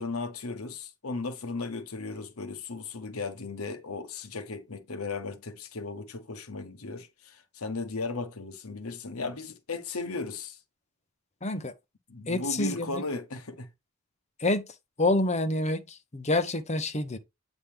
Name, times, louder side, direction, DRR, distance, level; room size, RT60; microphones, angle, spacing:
voice 1, 0.0-10.6 12.1-13.7, left 3 dB, 80° left, 1.2 m, -36 dB
voice 2, 11.4-11.7 12.3-13.0 14.4-14.6 15.0-17.2, left 2 dB, 35° left, 1.0 m, -27 dB
8.5 x 4.0 x 3.5 m
head